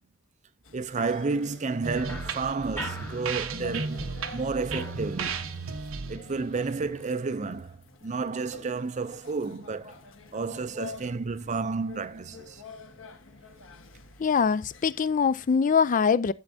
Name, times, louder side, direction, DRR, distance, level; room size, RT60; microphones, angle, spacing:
sound 1, 0.6-15.6, left 3 dB, 70° left, 1.4 m, -49 dB
voice 1, 0.7-4.0 4.3-5.5 6.1-10.0 10.3-12.6, right 4 dB, 35° right, 0.5 m, -31 dB
sound 2, 1.0-4.0 4.3-5.7, left 2 dB, 10° left, 0.8 m, -44 dB
sound 3, 1.8-7.4, right 4 dB, 80° right, 1.1 m, -35 dB
voice 2, 14.2-16.3, left 6 dB, 40° left, 0.4 m, -23 dB
12.0 x 7.2 x 2.7 m
head